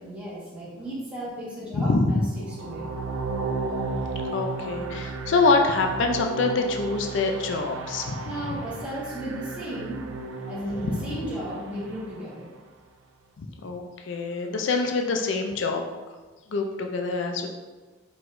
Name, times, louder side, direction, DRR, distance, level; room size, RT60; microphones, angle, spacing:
voice 1, 0.0-2.2 2.5-2.8 8.2-10.0 10.4-12.5, equal, 5° right, -9 dB, 1.3 m, -34 dB
voice 2, 1.7-2.0 4.3-8.2 13.4-15.8 16.5-17.5, left 3 dB, 70° left, 3 dB, 0.4 m, -25 dB
sound 1, 2.3-12.5, right 3 dB, 85° right, 0.4 m, -34 dB
4.6 x 4.0 x 2.5 m, 1.3 s
head